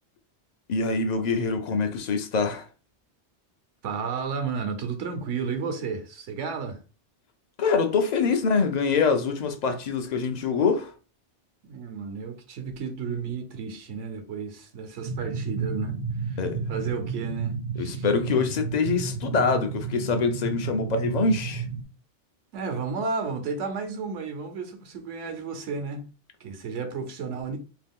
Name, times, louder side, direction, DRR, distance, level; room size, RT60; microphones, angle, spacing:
voice 1, 0.7-2.7 7.6-10.9 16.4-16.6 17.8-21.6, left 4 dB, 60° left, 0.4 m, -25 dB
voice 2, 3.8-6.8 11.6-16.0 16.2-16.4 16.7-18.0 22.5-26.1 26.4-27.6, right 5 dB, 85° right, 1.0 m, -32 dB
sound 1, 15.0-21.8, right 5 dB, 60° right, 0.4 m, -32 dB
2.8 x 2.3 x 3.5 m
omnidirectional pair, 1.2 m